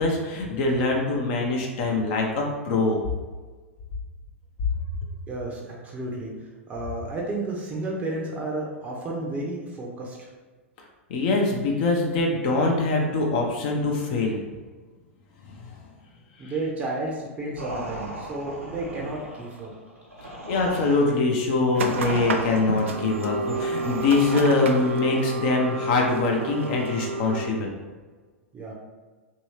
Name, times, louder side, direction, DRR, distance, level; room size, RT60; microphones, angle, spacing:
voice 1, 0.0-3.0 11.1-14.4 15.4-15.9 16.4-16.5 20.5-27.7, left 3 dB, 45° left, 0 dB, 0.6 m, -23 dB
voice 2, 5.3-6.3 6.7-10.3 16.4-19.7 28.5-28.7, right 2 dB, 20° right, -2 dB, 0.6 m, -32 dB
sound 1, 17.6-24.9, right 1 dB, 90° right, 0.7 m, -38 dB
sound 2, 21.7-27.5, right 3 dB, 65° right, 0.4 m, -30 dB
3.0 x 2.7 x 3.1 m, 1.3 s
figure-of-eight pair, 100°, 7 cm